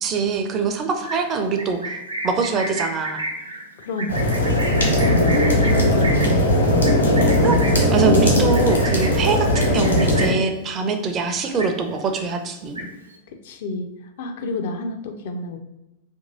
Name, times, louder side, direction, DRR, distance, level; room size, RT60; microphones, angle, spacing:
voice 1, 0.0-1.9 2.2-3.3 7.4-7.6 7.9-12.9, right 4 dB, 30° right, 5 dB, 0.5 m, -23 dB
Livestock farm animals working animals, 0.9-10.5 10.9-11.2 11.4-12.1 12.4-13.1, right 2 dB, 80° right, 0.6 m, -32 dB
voice 2, 3.8-4.5 5.4-6.8 13.4-13.9 14.2-15.6, left 2 dB, 55° left, 6 dB, 0.5 m, -30 dB
sound 1, 4.1-10.3, left 1 dB, 75° left, 1.2 m, -18 dB
2.9 x 2.7 x 3.9 m, 0.95 s
figure-of-eight pair, 90°, 0 cm